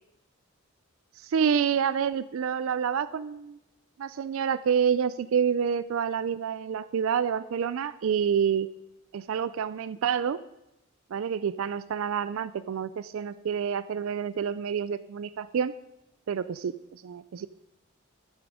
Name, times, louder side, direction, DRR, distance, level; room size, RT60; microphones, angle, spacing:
voice 1, 1.2-3.6 4.0-8.7 9.1-10.4 11.1-15.7 16.3-17.5, right 7 dB, 70° right, 15 dB, 0.4 m, -28 dB
11.0 x 8.9 x 4.9 m, 0.88 s
head